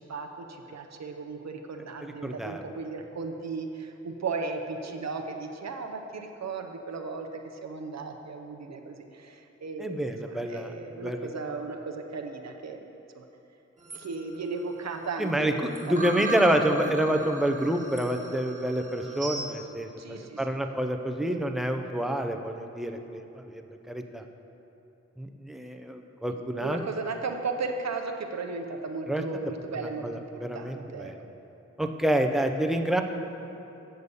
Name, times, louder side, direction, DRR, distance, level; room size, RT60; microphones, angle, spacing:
voice 1, 0.0-12.8 13.1-13.3 13.9-17.3 20.0-20.6 26.3-31.1, right 4 dB, 65° right, 3 dB, 0.7 m, -36 dB
voice 2, 2.2-2.6 9.8-10.7 11.0-11.2 15.2-23.6 23.9-24.2 25.2-26.8 29.1-29.2 30.0-31.2 31.8-33.0, right 1 dB, ahead, 5 dB, 0.5 m, -28 dB
sound 1, 13.8-19.5, right 2 dB, 25° right, 1.5 m, -38 dB
8.1 x 6.7 x 5.4 m, 3.0 s
wide cardioid pair, 75°, 29 cm